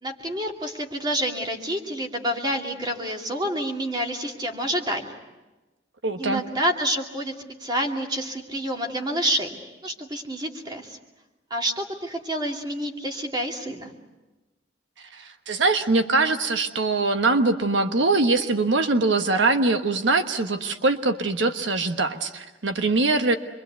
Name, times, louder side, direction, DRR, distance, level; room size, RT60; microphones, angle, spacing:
voice 1, 0.0-5.1 6.2-7.3 7.6-9.6 9.8-11.0 11.5-13.9, equal, 25° right, 2 dB, 2.6 m, -28 dB
voice 2, 6.0-6.4 15.1-23.4, right 3 dB, 85° right, 7 dB, 1.2 m, -22 dB
27.5 x 23.0 x 8.2 m, 1.1 s
head